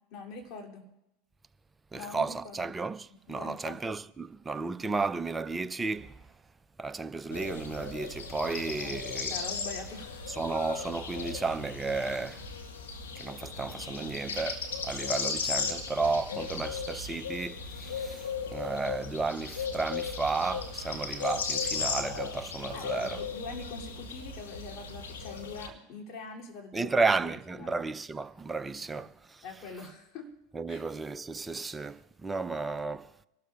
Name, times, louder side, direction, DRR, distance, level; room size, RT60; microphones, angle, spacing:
voice 1, 0.1-0.9 1.9-2.8 3.1-3.8 8.8-10.4 22.7-27.8 29.0-29.1 29.4-30.3 30.7-30.8, left 4 dB, 50° left, 2.8 m, -44 dB
voice 2, 1.9-6.2 6.8-9.3 10.3-12.4 13.2-23.2 26.7-29.4 30.5-33.1, right 3 dB, 15° right, 0.5 m, -33 dB
sound 1, 7.3-25.7, left 5 dB, 85° left, 1.4 m, -36 dB
26.0 x 12.5 x 2.4 m
hypercardioid pair, 85°, 0 cm